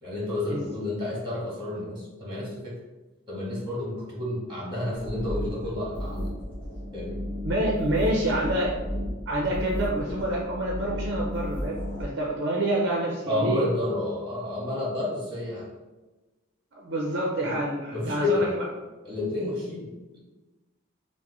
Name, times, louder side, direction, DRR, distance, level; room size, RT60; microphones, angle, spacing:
voice 1, 0.0-2.7 3.3-6.3 6.9-7.2 9.4-9.5 13.3-15.7 17.9-18.5 19.0-19.9, left 2 dB, 25° right, -5 dB, 1.4 m, -30 dB
sound 1, 4.9-12.0, equal, 10° left, 1.3 m, -33 dB
voice 2, 7.4-8.8 9.3-13.6 16.8-18.6, right 1 dB, 55° right, -2 dB, 0.6 m, -27 dB
6.0 x 2.1 x 3.0 m, 1.1 s
head